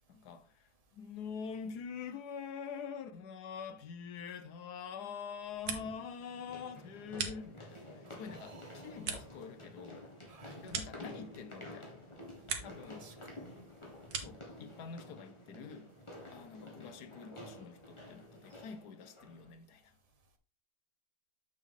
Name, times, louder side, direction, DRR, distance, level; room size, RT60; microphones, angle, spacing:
voice 1, 0.1-10.1 10.6-12.0 12.6-13.2 14.1-15.9 16.3-20.0, left 6 dB, 80° left, 1.4 m, -45 dB
sound 1, 3.7-3.8 5.7-19.5, left 1 dB, 20° left, 1.8 m, -51 dB
sound 2, 5.3-6.2 6.5-7.9 8.3-11.6 12.0-12.9 13.2-14.5, right 6 dB, 70° right, 1.7 m, -43 dB
voice 2, 8.0-9.0 10.3-10.6 13.0-13.4, right 4 dB, 30° right, 0.9 m, -56 dB
6.9 x 6.2 x 3.7 m
omnidirectional pair, 1.7 m